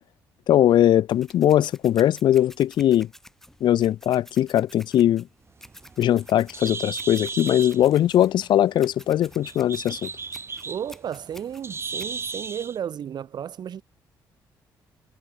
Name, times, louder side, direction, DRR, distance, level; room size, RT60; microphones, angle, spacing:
voice 1, 0.5-3.1 3.6-5.3 6.0-10.1, left 11 dB, 70° left, 0.7 m, -20 dB
sound 1, 1.1-12.1, left 1 dB, 5° left, 7.8 m, -50 dB
Bird, 5.5-12.8, right 4 dB, 30° right, 0.9 m, -36 dB
voice 2, 10.7-13.8, right 9 dB, 60° right, 2.0 m, -33 dB
supercardioid pair, 70°, 8 cm